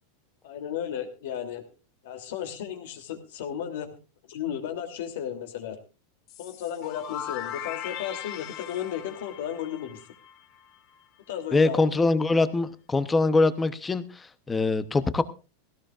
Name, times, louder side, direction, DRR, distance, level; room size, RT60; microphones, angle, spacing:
voice 1, 0.4-1.6 2.0-3.9 4.3-5.8 6.4-10.0 11.3-11.8, left 9 dB, 65° left, 3.0 m, -34 dB
sound 1, 6.3-11.0, left 10 dB, 40° left, 1.6 m, -39 dB
voice 2, 11.5-15.2, left 3 dB, 10° left, 0.8 m, -23 dB
18.0 x 17.0 x 2.5 m
supercardioid pair, 160°, 0 cm